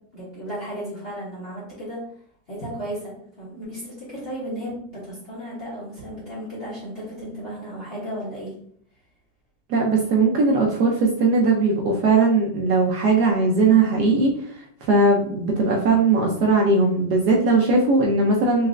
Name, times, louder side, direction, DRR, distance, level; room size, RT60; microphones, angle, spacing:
voice 1, 0.1-2.0 2.5-8.5, equal, 35° left, -9 dB, 1.6 m, -34 dB
voice 2, 9.7-14.3 14.9-18.7, right 3 dB, 70° right, 0 dB, 1.1 m, -19 dB
4.1 x 3.1 x 2.4 m, 0.63 s
omnidirectional pair, 2.0 m